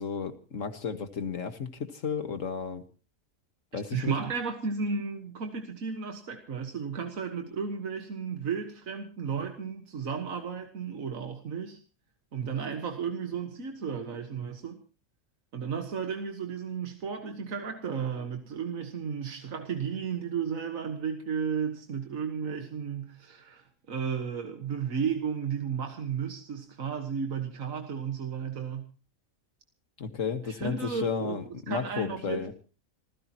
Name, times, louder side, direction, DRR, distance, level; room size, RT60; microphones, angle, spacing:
voice 1, 0.0-2.8 3.7-4.1 30.0-32.5, left 6 dB, 70° left, 9 dB, 1.9 m, -33 dB
voice 2, 3.7-11.8 12.3-14.8 15.5-28.9 30.4-31.4 31.7-32.5, right 6 dB, 80° right, 5 dB, 1.9 m, -34 dB
27.5 x 15.5 x 3.0 m, 0.35 s
omnidirectional pair, 1.4 m